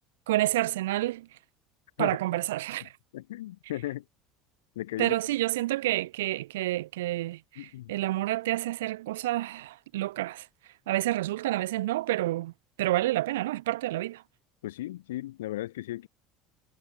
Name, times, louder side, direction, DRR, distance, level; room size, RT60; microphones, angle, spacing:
voice 1, 0.3-1.3 2.0-2.9 5.0-10.5 10.9-12.5 12.8-14.2, right 16 dB, 75° right, 3.5 m, -29 dB
voice 2, 3.1-4.0 4.8-5.1 7.6-7.9 14.6-16.1, left 15 dB, 75° left, 3.6 m, -36 dB
hypercardioid pair, 75°, 0 cm